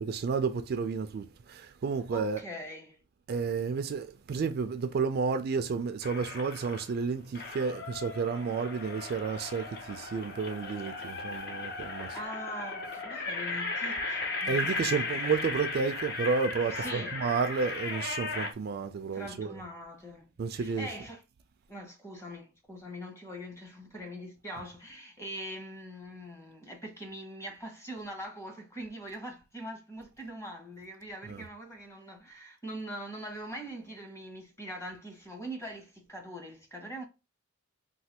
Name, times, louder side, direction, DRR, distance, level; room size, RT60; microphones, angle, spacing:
voice 1, 0.1-2.4 3.3-12.2 14.5-19.6 20.4-20.9 31.3-31.4, right 5 dB, 50° right, 0.3 m, -31 dB
voice 2, 2.1-3.0 12.1-15.4 16.7-17.2 19.1-21.2 21.7-37.0, equal, 15° left, 0.8 m, -42 dB
sound 1, 6.0-6.9 7.3-18.5, left 3 dB, 50° left, 0.7 m, -36 dB
3.2 x 2.2 x 2.8 m
head